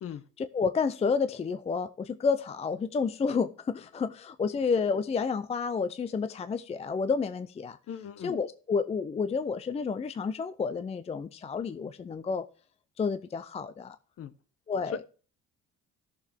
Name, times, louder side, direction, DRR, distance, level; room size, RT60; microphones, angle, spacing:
voice 1, 0.4-7.8 8.2-12.4 13.0-14.0 14.7-15.0, left 5 dB, 20° left, 0.5 m, -30 dB
voice 2, 7.9-8.3 14.2-14.3 14.9-15.0, left 7 dB, 50° left, 1.0 m, -38 dB
14.5 x 6.8 x 3.5 m
cardioid pair, 105°, 30 cm